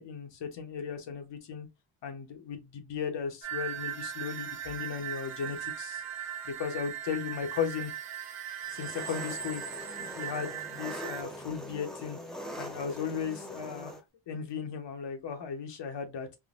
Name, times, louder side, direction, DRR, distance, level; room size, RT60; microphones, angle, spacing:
voice 1, 0.0-1.7 2.0-6.0 6.4-7.9 8.7-9.6 10.2-12.2 12.6-16.3, left 7 dB, 60° left, 0.9 m, -36 dB
sound 1, 3.4-11.2, right 10 dB, 90° right, 0.7 m, -39 dB
Engine, 8.7-14.0, equal, ahead, 0.5 m, -42 dB
3.6 x 2.1 x 2.4 m
cardioid pair, 95°, 49 cm